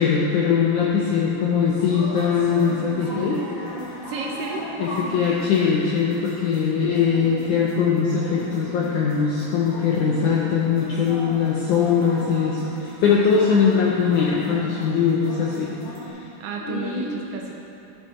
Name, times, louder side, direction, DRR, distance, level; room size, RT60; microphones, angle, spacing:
voice 1, 0.0-3.4 4.8-15.7 16.7-17.1, left 6 dB, 85° left, -4 dB, 1.8 m, -21 dB
sound 1, 1.7-16.1, equal, 55° left, 1.4 m, -37 dB
voice 2, 3.0-3.4 4.0-4.7 16.4-17.5, right 5 dB, 75° right, 0 dB, 2.2 m, -32 dB
12.0 x 6.3 x 4.2 m, 2.8 s
omnidirectional pair, 4.4 m